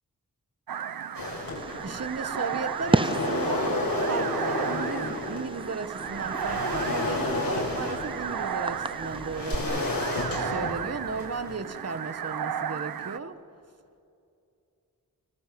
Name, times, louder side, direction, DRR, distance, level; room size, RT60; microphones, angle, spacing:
sound 1, 0.7-13.2, right 8 dB, 85° right, 0.7 m, -35 dB
sound 2, 1.1-2.1 2.6-5.5 6.0-11.6, left 2 dB, 70° left, 7.1 m, -31 dB
Fireworks, 1.6-9.6, right 2 dB, 15° right, 0.6 m, -34 dB
voice 1, 1.8-9.9 10.4-13.4, right 4 dB, 45° right, 10 dB, 1.5 m, -35 dB
27.0 x 25.5 x 7.7 m, 2.6 s
wide cardioid pair, 100°, 35 cm